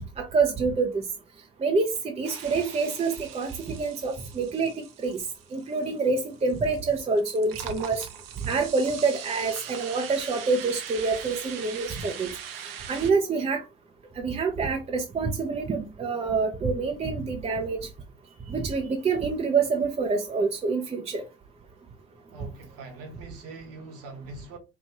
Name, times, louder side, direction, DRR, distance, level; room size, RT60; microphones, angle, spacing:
voice 1, 0.2-1.0 1.6-5.2 5.5-8.1 8.4-12.3 12.6-13.6 14.2-17.8 18.5-21.2, right 4 dB, 20° right, 0.7 m, -27 dB
sound 1, 2.2-13.1, right 8 dB, 70° right, 0.6 m, -41 dB
voice 2, 22.3-24.6, right 3 dB, 50° right, 1.3 m, -42 dB
4.7 x 2.6 x 2.8 m
figure-of-eight pair, 60°, 30 cm